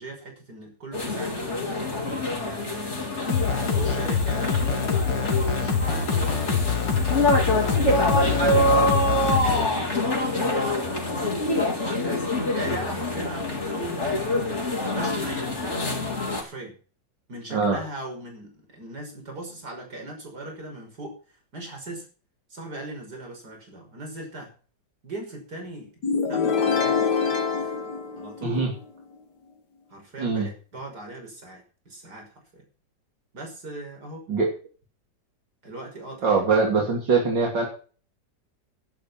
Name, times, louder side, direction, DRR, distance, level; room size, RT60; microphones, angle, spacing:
voice 1, 0.0-1.8 2.3-6.8 7.1-8.7 9.0-11.3 11.8-12.2 12.5-14.5 14.9-15.9 16.3-16.8 17.3-21.2 21.5-22.1 22.5-24.5 25.0-26.0 26.3-27.1 27.6-27.7 28.1-28.7 29.9-32.6 33.3-34.3 35.6-36.4, right 2 dB, 60° right, 2 dB, 6.4 m, -39 dB
sound 1, 0.9-16.4, left 1 dB, 40° left, 4.3 m, -26 dB
sound 2, 3.3-9.7, left 6 dB, 80° left, 2.6 m, -25 dB
sound 3, 26.0-28.8, left 5 dB, 65° left, 2.3 m, -25 dB
voice 2, 30.2-30.5 34.3-34.5 36.2-37.7, right 4 dB, 80° right, 0 dB, 3.7 m, -22 dB
12.0 x 12.0 x 5.9 m, 0.39 s
omnidirectional pair, 1.9 m